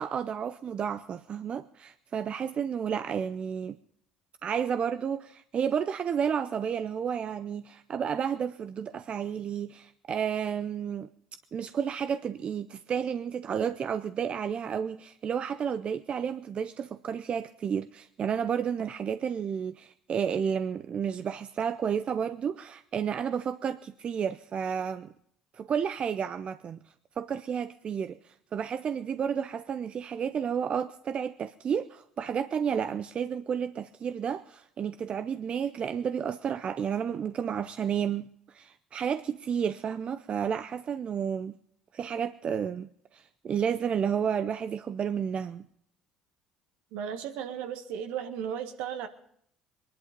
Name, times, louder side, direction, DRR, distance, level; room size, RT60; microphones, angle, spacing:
voice 1, 0.0-3.8 4.4-11.1 11.5-25.1 25.5-26.8 27.2-41.5 41.9-45.7, right 7 dB, 45° right, 12 dB, 0.6 m, -31 dB
voice 2, 46.9-49.1, right 8 dB, 70° right, 7 dB, 1.5 m, -35 dB
22.5 x 11.0 x 5.2 m, 0.69 s
hypercardioid pair, 60°, 3 cm